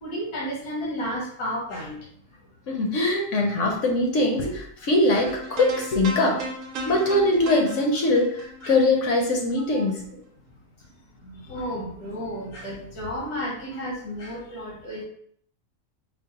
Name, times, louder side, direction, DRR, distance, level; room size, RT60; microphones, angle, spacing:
voice 1, 0.0-2.0 5.1-5.2 6.8-7.1 8.6-8.7 9.6-10.2 11.2-15.0, equal, 80° left, -4 dB, 1.4 m, -33 dB
voice 2, 2.7-6.4 6.9-10.0, left 2 dB, 65° left, 1 dB, 0.9 m, -22 dB
sound 1, 5.3-9.6, right 2 dB, 65° right, 0.9 m, -36 dB
4.5 x 2.1 x 2.8 m, 0.62 s
omnidirectional pair, 1.6 m